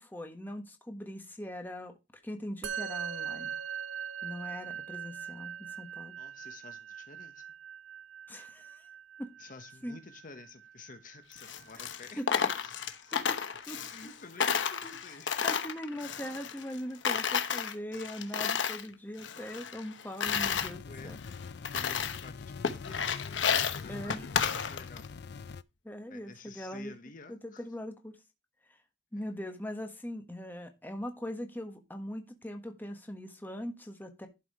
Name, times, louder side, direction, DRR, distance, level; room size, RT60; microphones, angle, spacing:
voice 1, 0.0-2.0 2.2-3.5 4.2-6.1 8.3-8.9 9.2-9.3 9.8-10.0 11.7-11.8 12.2-12.3 13.1-13.4 13.7-14.1 14.4-14.5 14.8-15.2 15.4-21.2 23.9-24.3 25.8-26.9 27.3-28.2 29.1-34.3, equal, 10° left, 1.4 m, -41 dB
Musical instrument, 2.6-12.2, right 8 dB, 70° right, 0.9 m, -42 dB
voice 2, 6.2-7.4 9.4-12.8 13.9-15.5 20.8-21.2 21.7-23.2 23.7-25.1 26.1-27.6 29.1-29.2, left 4 dB, 45° left, 1.0 m, -51 dB
Coin (dropping), 11.3-14.1 14.4-16.8 17.0-18.9 19.2-20.7 21.2-21.3 21.6-22.3 22.6-25.1, left 7 dB, 85° left, 1.0 m, -32 dB
sound 1, 20.2-25.6, left 5 dB, 60° left, 0.4 m, -44 dB
11.5 x 4.8 x 4.8 m
head